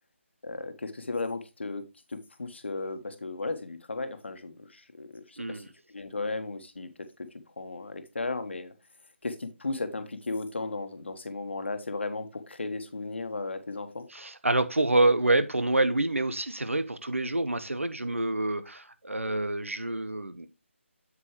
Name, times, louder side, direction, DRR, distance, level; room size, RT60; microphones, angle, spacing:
voice 1, 0.4-1.8 2.1-5.6 5.9-6.9 7.6-8.7 9.2-14.0, left 3 dB, 60° left, 1.4 m, -35 dB
voice 2, 5.4-5.7 14.1-20.5, right 2 dB, 75° right, 1.1 m, -27 dB
8.1 x 7.5 x 3.2 m
figure-of-eight pair, 155°, 7 cm